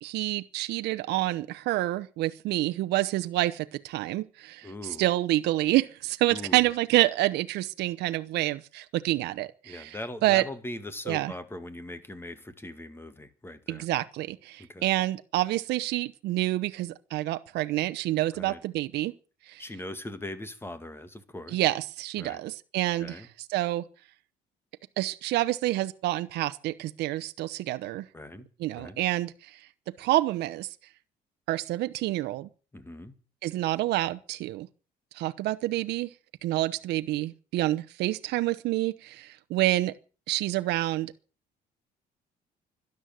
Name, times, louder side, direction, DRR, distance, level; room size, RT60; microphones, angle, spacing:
voice 1, 0.0-10.0 10.2-10.4 11.1-11.3 13.7-19.1 19.5-19.6 21.5-23.2 23.5-23.8 25.0-28.1 28.6-29.7 30.0-30.7 31.5-32.5 33.4-34.7 35.1-36.1 36.4-39.9 40.3-41.1, right 16 dB, 80° right, 0.9 m, -28 dB
voice 2, 4.6-5.1 6.3-6.7 9.6-13.9 14.6-14.9 18.3-18.6 19.6-21.6 22.2-22.4 23.0-23.3 28.1-28.5 28.7-29.0 32.7-33.1, left 1 dB, 15° left, 2.1 m, -40 dB
12.5 x 11.0 x 9.1 m
cardioid pair, 110°, 17 cm